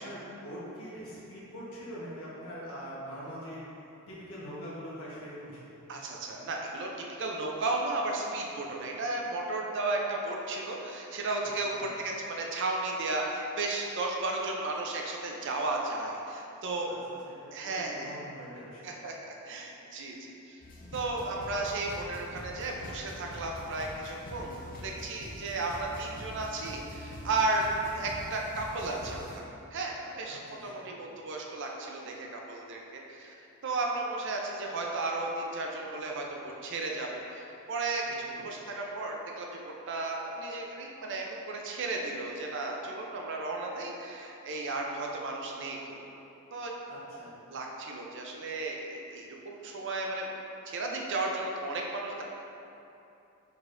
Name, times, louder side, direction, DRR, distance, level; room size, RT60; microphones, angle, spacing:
voice 1, 0.0-3.6 4.1-5.6 11.4-11.9 16.8-17.0 17.2-18.9 30.3-30.9 38.2-38.4 46.9-47.3, equal, 65° left, -8 dB, 1.2 m, -43 dB
voice 2, 5.9-16.9 17.5-18.2 18.8-20.6 20.9-27.7 27.9-29.4 29.7-46.0 46.5-46.7 47.5-50.3 50.7-52.2, right 2 dB, 55° right, 0 dB, 0.5 m, -34 dB
sound 1, 20.6-29.4, left 1 dB, 40° left, 0.5 m, -45 dB
4.9 x 4.1 x 2.6 m, 2.8 s
head